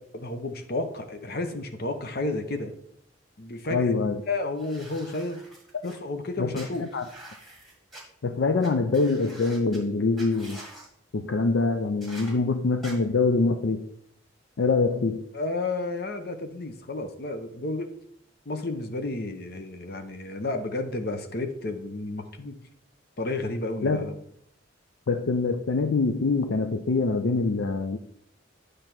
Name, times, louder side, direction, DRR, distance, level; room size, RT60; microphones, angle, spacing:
voice 1, 0.1-2.7 3.4-3.9 4.3-5.4 5.8-6.8 15.3-17.9 18.5-22.6 23.2-24.2, left 2 dB, 50° left, 7 dB, 0.8 m, -31 dB
voice 2, 3.7-4.2 6.4-7.0 8.2-10.6 11.1-13.8 14.6-15.2 23.8-24.0 25.1-28.0, left 3 dB, 70° left, 7 dB, 0.5 m, -24 dB
sound 1, 4.6-6.0 6.5-8.0 8.6-8.7 8.9-9.8 10.2-10.9 12.0-12.3 12.8-12.9, right 1 dB, ahead, 1.6 m, -46 dB
8.9 x 3.3 x 5.9 m, 0.71 s
head